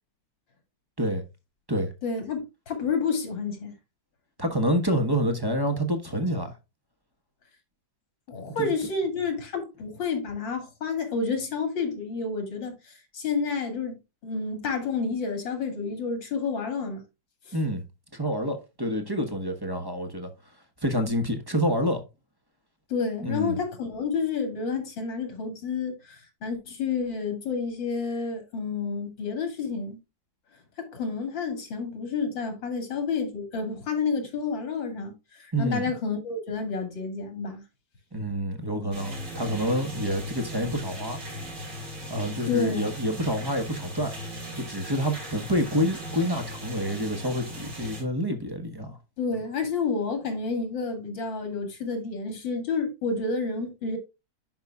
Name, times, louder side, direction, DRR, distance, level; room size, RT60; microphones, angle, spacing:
voice 1, 2.0-3.7 8.3-13.9 14.2-17.0 17.5-17.6 22.9-30.0 30.8-37.6 42.5-42.9 49.2-54.0, left 4 dB, 90° left, 3.0 m, -30 dB
voice 2, 4.4-6.6 8.6-8.7 17.5-17.8 18.1-20.3 20.8-22.0 23.2-23.6 35.5-35.9 38.1-41.2 42.1-44.1 44.6-49.0, equal, 15° right, 0.9 m, -27 dB
sound 1, 38.9-48.0, equal, 65° right, 4.4 m, -38 dB
11.0 x 5.5 x 2.3 m
omnidirectional pair, 2.0 m